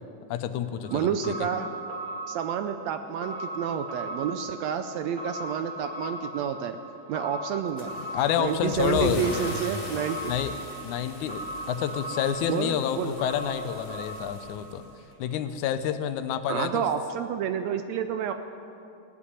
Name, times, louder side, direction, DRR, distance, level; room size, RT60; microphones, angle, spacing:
voice 1, 0.3-1.3 8.1-9.3 10.2-10.6 10.8-14.8 15.2-16.8, left 9 dB, 75° left, 10 dB, 2.0 m, -29 dB
sound 1, 0.8-15.0 15.3-15.4, right 1 dB, 15° right, 1.8 m, -39 dB
voice 2, 0.9-1.7 2.3-6.8 7.1-7.9 8.4-10.3 12.5-13.2 16.5-18.3, right 8 dB, 80° right, 9 dB, 1.5 m, -29 dB
Car / Engine starting / Accelerating revving vroom, 7.8-15.1, left 2 dB, 30° left, 1.0 m, -39 dB
17.0 x 8.4 x 9.7 m, 2.7 s
omnidirectional pair, 3.7 m